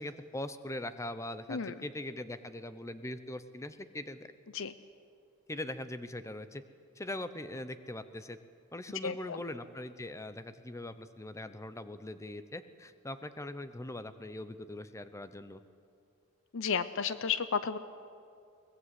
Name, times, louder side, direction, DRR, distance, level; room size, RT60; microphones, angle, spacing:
voice 1, 0.0-4.3 5.5-6.6 7.0-8.4 8.7-15.6, left 1 dB, 15° left, 12 dB, 0.8 m, -41 dB
voice 2, 9.0-9.4 16.5-17.8, left 6 dB, 65° left, 13 dB, 0.7 m, -32 dB
23.0 x 19.5 x 8.3 m, 2.4 s
head